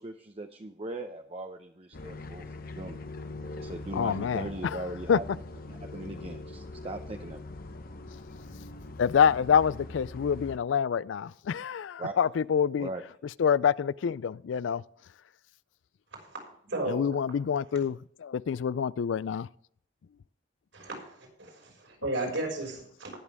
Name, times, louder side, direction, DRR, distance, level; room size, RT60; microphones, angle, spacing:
voice 1, 0.0-2.5 2.8-3.0 3.6-5.2 5.7-7.4 12.0-12.1 12.7-13.0, right 2 dB, 30° right, 0.7 m, -39 dB
sound 1, 1.9-10.6, left 2 dB, 50° left, 1.0 m, -42 dB
voice 2, 3.9-5.2 9.0-12.9 13.4-14.8 16.9-19.5, left 7 dB, 75° left, 0.4 m, -27 dB
voice 3, 16.6-17.0 20.7-23.1, right 2 dB, 85° right, 5.9 m, -34 dB
19.5 x 7.3 x 3.5 m
head